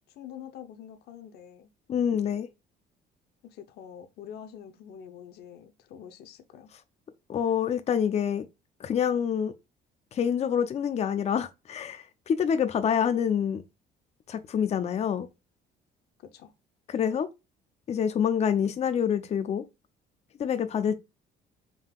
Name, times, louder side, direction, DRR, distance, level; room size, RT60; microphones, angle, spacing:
voice 1, 0.1-1.7 3.4-6.7 16.2-16.5, left 9 dB, 75° left, 0.8 m, -46 dB
voice 2, 1.9-2.5 7.3-8.4 8.8-9.5 10.1-13.6 14.3-15.3 16.9-17.3 17.9-19.6 20.4-21.0, left 8 dB, 40° left, 0.6 m, -26 dB
5.3 x 3.8 x 2.4 m
cardioid pair, 110°, 17 cm